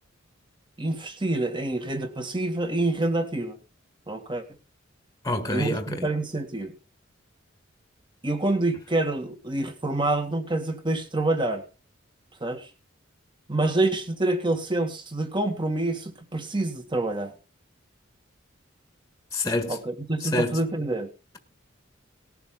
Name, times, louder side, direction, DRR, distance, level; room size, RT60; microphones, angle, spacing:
voice 1, 0.8-3.6 4.1-4.4 5.5-6.7 8.2-11.6 12.4-12.7 13.5-17.3 19.7-21.1, right 2 dB, 25° right, 1.9 m, -27 dB
voice 2, 5.2-6.1 19.3-19.8 20.2-20.6, left 2 dB, 15° left, 1.5 m, -27 dB
19.0 x 6.9 x 3.8 m
head